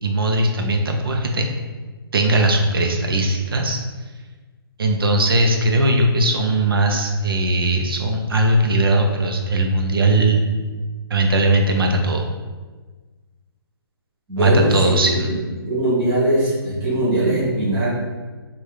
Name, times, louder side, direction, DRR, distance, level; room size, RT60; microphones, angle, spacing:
voice 1, 0.0-1.5 2.1-3.8 4.8-10.4 11.1-12.3 14.4-15.3, right 1 dB, 65° right, 2 dB, 0.6 m, -19 dB
voice 2, 14.3-14.9 15.7-18.0, right 1 dB, 10° right, -11 dB, 0.8 m, -20 dB
5.2 x 2.3 x 3.2 m, 1.3 s
hypercardioid pair, 180°, 13 cm